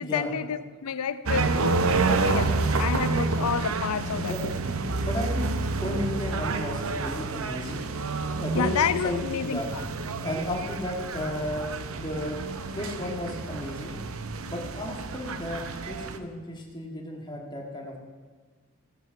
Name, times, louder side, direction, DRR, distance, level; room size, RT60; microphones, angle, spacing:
voice 1, 0.0-4.5 8.5-9.8, left 6 dB, 90° left, 14 dB, 0.6 m, -30 dB
sound 1, 1.3-16.2, right 3 dB, 70° right, 0.7 m, -29 dB
voice 2, 5.0-7.8 8.3-9.7 10.2-12.4 12.7-14.0 14.4-18.0, left 1 dB, 20° left, 0 dB, 1.8 m, -34 dB
15.5 x 8.8 x 5.8 m, 1.5 s
head